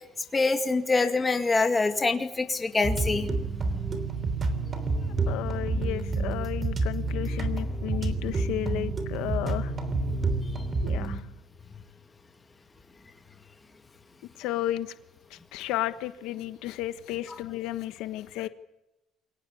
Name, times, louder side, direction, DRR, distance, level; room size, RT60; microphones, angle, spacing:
voice 1, 0.3-3.3 17.3-17.4, left 3 dB, 15° left, 5 dB, 2.2 m, -25 dB
sound 1, 2.8-11.2, right 3 dB, 25° right, 3.2 m, -29 dB
voice 2, 5.3-9.7 10.8-11.2 14.4-14.9 15.3-18.5, left 14 dB, 75° left, 11 dB, 1.3 m, -33 dB
28.5 x 23.5 x 8.6 m, 0.94 s
cardioid pair, 180°, 0 cm